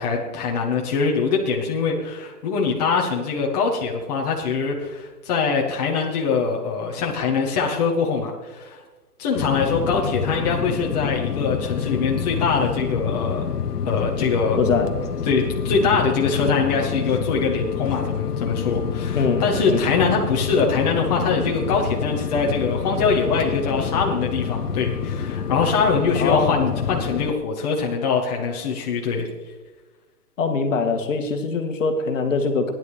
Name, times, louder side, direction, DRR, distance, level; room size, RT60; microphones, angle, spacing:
voice 1, 0.0-8.8 9.2-13.5 13.8-14.6 15.3-29.3, left 5 dB, 25° left, -2 dB, 1.7 m, -23 dB
sound 1, 9.4-27.3, left 7 dB, 75° left, 1.1 m, -27 dB
voice 2, 14.6-14.9 19.1-19.9 26.2-26.7 30.4-32.7, left 4 dB, 55° left, 4 dB, 2.1 m, -23 dB
16.0 x 11.0 x 5.1 m, 1.2 s
hypercardioid pair, 160°, 47 cm